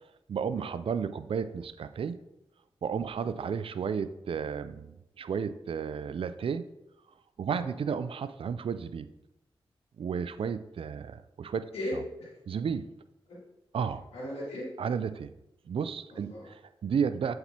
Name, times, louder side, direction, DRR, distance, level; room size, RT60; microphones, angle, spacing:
voice 1, 0.3-2.2 2.8-6.6 7.4-9.1 10.0-11.7 12.5-12.9 13.7-14.0 14.8-15.3 15.7-17.3, right 6 dB, 65° right, 13 dB, 0.4 m, -32 dB
voice 2, 11.7-12.3 13.3-13.4 14.1-14.7 16.1-16.5, left 1 dB, 90° left, -7 dB, 2.1 m, -37 dB
7.8 x 4.3 x 2.8 m, 0.89 s
cardioid pair, 50°, 10 cm